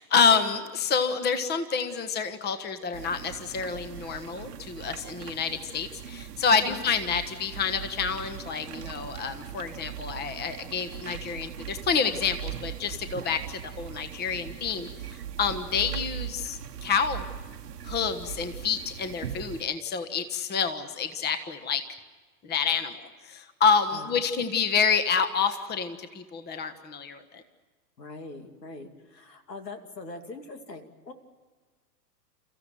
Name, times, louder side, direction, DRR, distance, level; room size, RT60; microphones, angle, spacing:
voice 1, 0.0-17.2 17.8-21.8 22.4-27.4, left 6 dB, 20° left, 10 dB, 1.4 m, -28 dB
sound 1, 2.9-19.6, right 10 dB, 75° right, 1.2 m, -40 dB
voice 2, 28.0-31.1, left 3 dB, 80° left, 7 dB, 2.6 m, -42 dB
29.5 x 15.0 x 9.2 m, 1.4 s
figure-of-eight pair, 105°, 49 cm